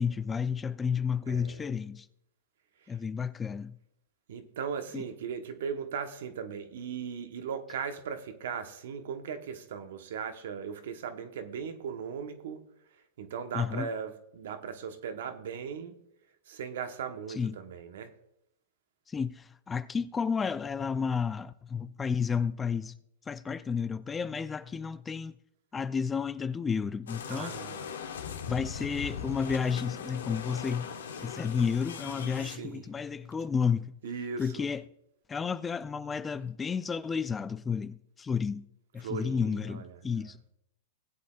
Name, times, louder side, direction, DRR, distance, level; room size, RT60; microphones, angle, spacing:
voice 1, 0.0-2.1 2.9-3.8 4.9-5.0 13.5-13.9 17.3-17.6 19.1-23.0 23.3-25.3 25.7-27.6 28.5-30.9 31.2-33.9 34.4-34.8 35.3-38.6 38.9-40.4, left 6 dB, 15° left, 0.4 m, -31 dB
voice 2, 1.2-1.8 2.8-3.0 4.3-12.7 12.9-16.0 16.5-18.2 27.3-28.0 32.4-32.9 34.0-34.7 39.0-40.3, right 6 dB, 70° right, 1.1 m, -38 dB
sound 1, 27.1-32.6, left 7 dB, 85° left, 1.1 m, -40 dB
19.0 x 8.4 x 2.4 m
hypercardioid pair, 120°, 0 cm